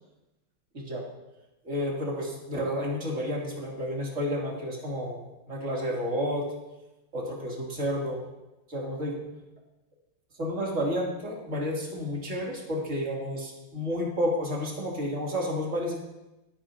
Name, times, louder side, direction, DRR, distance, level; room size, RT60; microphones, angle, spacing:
voice 1, 1.6-5.2 5.5-6.4 7.1-8.2 8.7-9.1 10.4-15.9, equal, 35° right, -3 dB, 3.2 m, -31 dB
28.5 x 9.8 x 2.8 m, 0.99 s
omnidirectional pair, 2.3 m